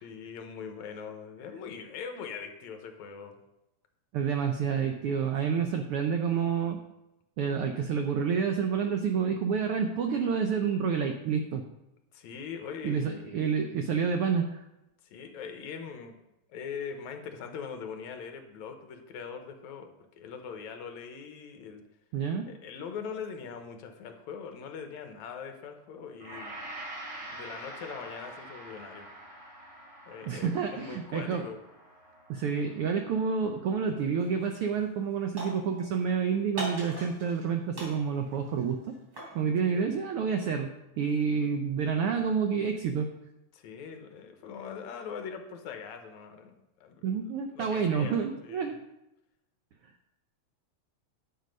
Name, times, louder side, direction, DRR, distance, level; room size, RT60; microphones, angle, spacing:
voice 1, 0.0-3.4 5.5-5.9 12.1-13.2 15.0-16.2 16.5-21.8 22.5-26.6 27.3-29.1 30.1-31.6 39.6-39.9 43.5-46.5 46.8-47.0 47.5-48.8, left 6 dB, 75° left, 6 dB, 2.3 m, -42 dB
voice 2, 4.1-6.8 7.4-11.6 12.8-14.6 22.1-22.5 30.3-31.5 32.3-38.8 39.3-40.7 41.0-43.1 47.0-48.8, right 6 dB, 80° right, 5 dB, 1.2 m, -29 dB
Gong, 26.2-34.6 35.0-35.1, right 1 dB, 60° right, 3.9 m, -46 dB
sound 1, 34.2-34.5 34.8-36.1 36.6-37.5 37.7-39.4, right 1 dB, 40° right, 3.9 m, -40 dB
11.0 x 6.8 x 5.3 m, 0.91 s
omnidirectional pair, 3.4 m